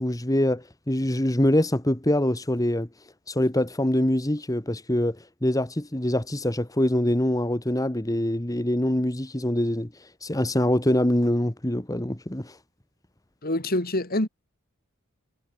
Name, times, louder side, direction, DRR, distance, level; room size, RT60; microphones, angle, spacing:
voice 1, 0.0-2.9 3.3-5.2 5.4-9.9 10.2-12.5, left 1 dB, 15° left, 1.6 m, -24 dB
voice 2, 13.4-14.3, left 1 dB, 45° left, 3.3 m, -25 dB
head